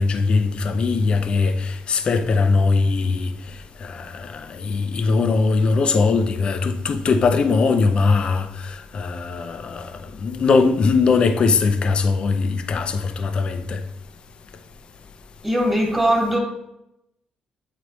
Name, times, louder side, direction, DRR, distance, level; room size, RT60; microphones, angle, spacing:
voice 1, 0.0-3.3 3.8-9.9 10.2-13.8, left 4 dB, 45° left, 0.6 m, -20 dB
voice 2, 15.4-16.4, right 1 dB, 5° right, 1.7 m, -20 dB
8.0 x 4.1 x 3.1 m
cardioid pair, 120°, 2 cm